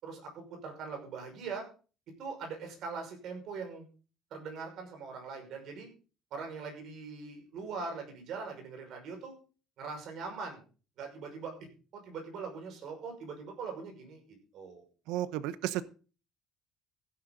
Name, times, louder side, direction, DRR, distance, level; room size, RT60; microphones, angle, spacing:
voice 1, 0.0-1.7 2.2-3.9 4.3-5.9 6.3-9.3 9.8-10.6 11.0-11.5 11.9-14.2 14.5-14.9, right 4 dB, 50° right, 3 dB, 5.5 m, -41 dB
voice 2, 15.1-15.8, right 13 dB, 80° right, 15 dB, 0.8 m, -33 dB
15.5 x 10.0 x 3.9 m, 0.36 s
cardioid pair, 170°, 0 cm